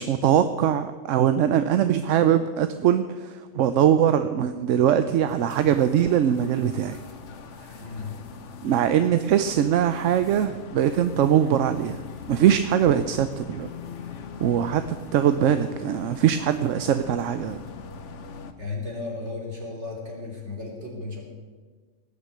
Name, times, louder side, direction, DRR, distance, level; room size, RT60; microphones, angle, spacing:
voice 1, 0.0-7.0 7.6-7.7 8.6-12.0 12.3-13.7 14.4-14.8 15.1-17.6, right 9 dB, 80° right, 10 dB, 1.0 m, -22 dB
sound 1, 5.3-18.5, left 6 dB, 70° left, 1.2 m, -41 dB
voice 2, 7.8-8.2 18.6-21.2, left 3 dB, 60° right, -1 dB, 3.5 m, -34 dB
18.5 x 6.6 x 8.3 m, 1.4 s
omnidirectional pair, 1.3 m